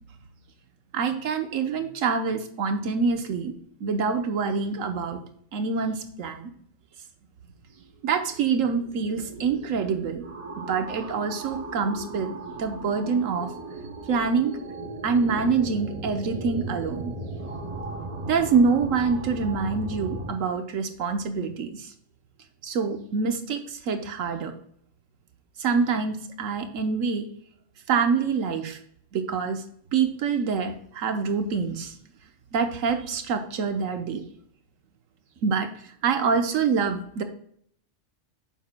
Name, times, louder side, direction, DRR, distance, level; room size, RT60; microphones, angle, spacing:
voice 1, 0.9-3.5 3.8-5.2 5.5-6.5 8.0-10.3 10.6-12.3 12.6-13.5 14.1-14.6 15.0-17.1 18.3-21.9 22.6-24.5 25.6-27.3 27.9-28.8 29.1-29.6 29.9-31.9 32.5-34.2 35.4-37.2, right 5 dB, 80° right, 6 dB, 1.3 m, -26 dB
sound 1, 8.3-20.3, right 2 dB, 35° right, 0.6 m, -37 dB
9.2 x 7.0 x 2.2 m, 0.65 s
omnidirectional pair, 1.3 m